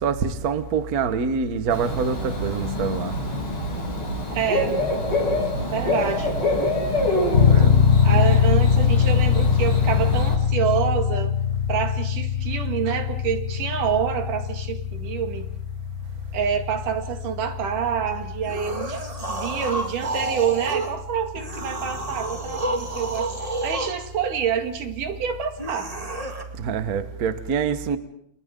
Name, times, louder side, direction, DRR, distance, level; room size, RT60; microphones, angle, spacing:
voice 1, 0.0-3.1 7.4-7.7 26.6-28.0, right 6 dB, 60° right, 0.9 m, -25 dB
Bird / Cricket, 1.7-10.3, left 1 dB, 40° left, 8.4 m, -26 dB
voice 2, 4.3-4.8 5.7-6.3 8.0-11.3 11.7-15.5 16.3-19.0 19.3-23.3 23.6-25.9, right 8 dB, 90° right, 3.6 m, -27 dB
sound 1, 7.3-21.7, left 7 dB, 75° left, 0.6 m, -23 dB
sound 2, 18.4-20.9 21.4-24.0 25.6-26.4, right 2 dB, 15° right, 1.5 m, -30 dB
30.0 x 29.5 x 3.8 m
omnidirectional pair, 3.5 m